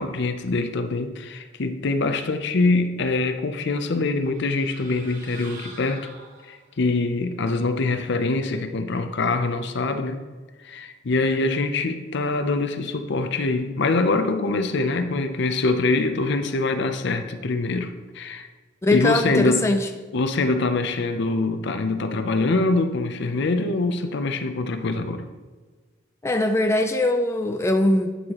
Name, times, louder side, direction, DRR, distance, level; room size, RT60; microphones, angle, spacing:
voice 1, 0.0-6.1 6.5-10.2 10.6-18.5 18.9-19.7 20.1-25.3, left 3 dB, 60° left, 8 dB, 0.6 m, -24 dB
sound 1, 4.2-6.9, right 3 dB, 45° right, 1.3 m, -45 dB
voice 2, 18.8-19.9 26.2-28.3, left 2 dB, 15° left, 5 dB, 0.3 m, -21 dB
9.2 x 6.3 x 3.0 m, 1.4 s
head